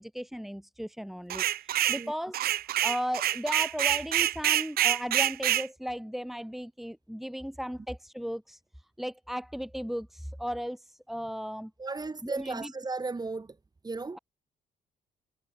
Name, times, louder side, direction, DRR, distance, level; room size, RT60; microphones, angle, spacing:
voice 1, 0.0-2.4 2.8-8.6 9.0-11.7 12.2-12.7, equal, ahead, 3.6 m, -36 dB
sound 1, 1.3-2.0 2.3-5.7, right 13 dB, 70° right, 0.8 m, -26 dB
voice 2, 11.8-13.6 13.8-14.2, right 3 dB, 25° right, 3.7 m, -35 dB
cardioid pair, 85°, 16 cm